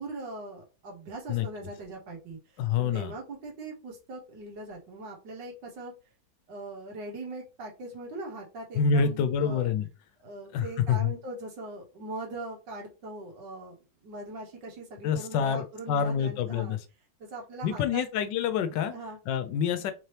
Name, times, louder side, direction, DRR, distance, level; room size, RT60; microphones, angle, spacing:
voice 1, 0.0-5.9 6.5-9.7 10.2-13.8 14.0-16.8 17.2-18.1 18.9-19.2, right 2 dB, 80° right, 1.8 m, -41 dB
voice 2, 2.6-3.1 8.8-9.9 10.5-11.1 15.0-16.8 17.6-18.9 19.3-19.9, left 7 dB, 85° left, 1.3 m, -27 dB
3.9 x 2.9 x 3.2 m
omnidirectional pair, 1.9 m